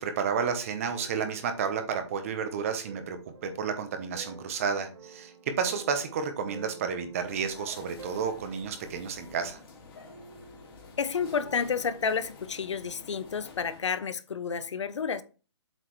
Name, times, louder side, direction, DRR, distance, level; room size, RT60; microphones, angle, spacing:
voice 1, 0.0-9.6, right 6 dB, 30° right, 0.9 m, -31 dB
sound 1, 0.8-13.4, right 4 dB, 80° right, 2.1 m, -51 dB
sound 2, 7.3-13.8, left 4 dB, 50° left, 2.1 m, -50 dB
voice 2, 11.0-15.2, left 6 dB, 80° left, 0.8 m, -30 dB
7.6 x 4.9 x 3.1 m
hypercardioid pair, 170°, 15 cm